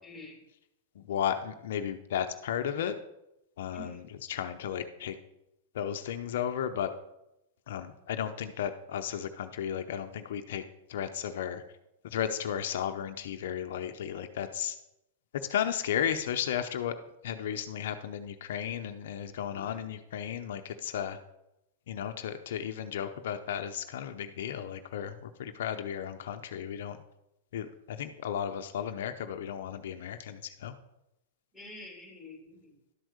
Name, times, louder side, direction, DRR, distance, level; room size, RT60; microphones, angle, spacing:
voice 1, 0.0-0.4 3.7-4.0 19.5-19.8 31.5-32.8, left 1 dB, 5° right, -1 dB, 3.0 m, -47 dB
voice 2, 1.0-3.0 3.6-4.0 4.3-5.1 5.7-6.9 7.7-10.6 10.9-11.6 12.0-14.8 15.3-17.0 17.2-21.2 21.9-27.0 27.5-30.7, left 9 dB, 70° left, 7 dB, 0.6 m, -34 dB
11.5 x 4.5 x 6.4 m, 0.89 s
hypercardioid pair, 135°, 0 cm